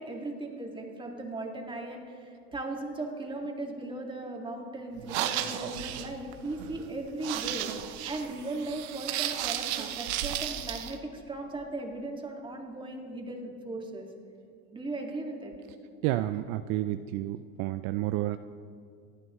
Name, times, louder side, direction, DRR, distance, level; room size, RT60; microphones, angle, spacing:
voice 1, 0.0-7.7 8.0-14.1 14.7-15.5, right 2 dB, 15° right, 1 dB, 2.0 m, -37 dB
sound 1, 5.0-10.9, right 12 dB, 85° right, 0.9 m, -34 dB
voice 2, 16.0-18.4, right 14 dB, 60° right, 11 dB, 0.5 m, -30 dB
26.5 x 9.6 x 3.1 m, 2.5 s
supercardioid pair, 120°, 32 cm